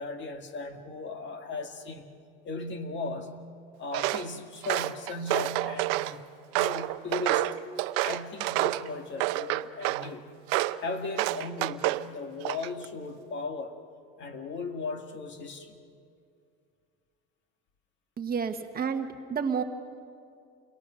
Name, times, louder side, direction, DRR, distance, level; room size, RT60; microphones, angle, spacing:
voice 1, 0.0-2.1 2.4-3.4 3.8-6.2 6.5-7.5 8.0-10.3 10.8-13.7 14.2-15.8, left 3 dB, 40° left, 6 dB, 2.0 m, -37 dB
Walk footsteps, 3.9-4.3 4.6-6.1 6.5-8.9 9.2-10.1 10.5-10.8 11.2-12.1 12.4-12.9, right 18 dB, 90° right, 0.7 m, -28 dB
voice 2, 18.2-19.6, right 6 dB, 30° right, 6 dB, 1.3 m, -30 dB
29.0 x 23.0 x 6.3 m, 2.3 s
cardioid pair, 125°, 29 cm